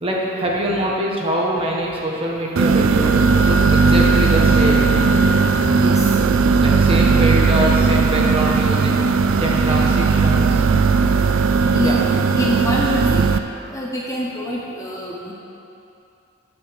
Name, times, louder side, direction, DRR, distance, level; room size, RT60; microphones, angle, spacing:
voice 1, 0.0-4.9 6.6-9.0 9.4-10.6 11.8-12.0, right 1 dB, 25° right, -3 dB, 1.2 m, -24 dB
sound 1, 2.6-13.4, right 4 dB, 70° right, 0.3 m, -16 dB
sound 2, 3.1-10.7, left 3 dB, 45° left, 0.6 m, -36 dB
voice 2, 5.7-6.2 7.1-7.2 9.6-10.0 11.4-13.3 13.7-15.3, equal, 15° left, -3 dB, 0.8 m, -25 dB
8.0 x 6.5 x 6.4 m, 2.8 s
head